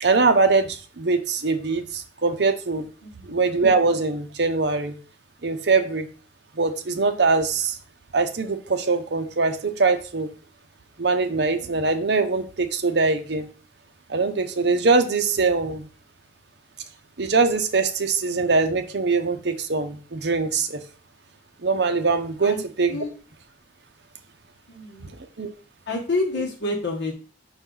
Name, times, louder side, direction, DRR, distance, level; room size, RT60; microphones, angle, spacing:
voice 1, 0.0-2.9 3.3-5.0 5.4-6.1 6.6-7.8 8.1-10.3 11.0-13.5 14.1-15.9 17.2-20.8 21.6-23.0 25.4-25.5, right 4 dB, 60° right, 7 dB, 0.7 m, -22 dB
voice 2, 24.7-25.1 25.9-27.1, left 2 dB, 65° left, -1 dB, 1.2 m, -28 dB
5.5 x 4.4 x 3.9 m, 0.37 s
head